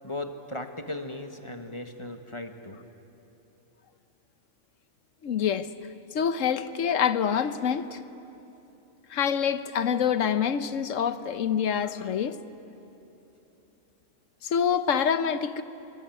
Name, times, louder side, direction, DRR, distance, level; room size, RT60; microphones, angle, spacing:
voice 1, 0.0-2.8, left 1 dB, 25° left, 6 dB, 1.3 m, -37 dB
voice 2, 5.2-5.7 6.1-8.0 9.1-12.4 14.4-15.6, left 7 dB, 75° left, 12 dB, 1.2 m, -26 dB
24.5 x 21.0 x 9.0 m, 3.0 s
omnidirectional pair, 1.3 m